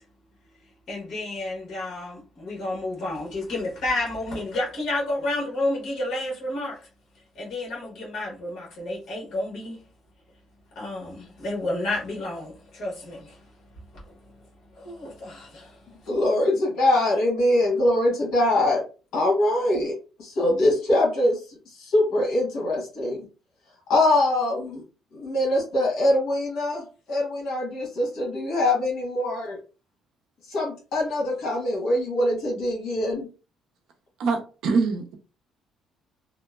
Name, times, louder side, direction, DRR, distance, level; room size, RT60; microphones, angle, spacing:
voice 1, 0.9-6.8 7.3-9.8 10.7-13.4 14.7-15.8, left 2 dB, 45° left, 1.3 m, -30 dB
voice 2, 16.1-18.8 19.1-21.4 21.7-23.2 23.9-24.8 25.1-29.6 30.5-33.3, left 1 dB, 65° left, 1.2 m, -23 dB
voice 3, 34.2-35.1, right 4 dB, 65° right, 0.6 m, -24 dB
2.8 x 2.1 x 2.3 m
cardioid pair, 175°, 0 cm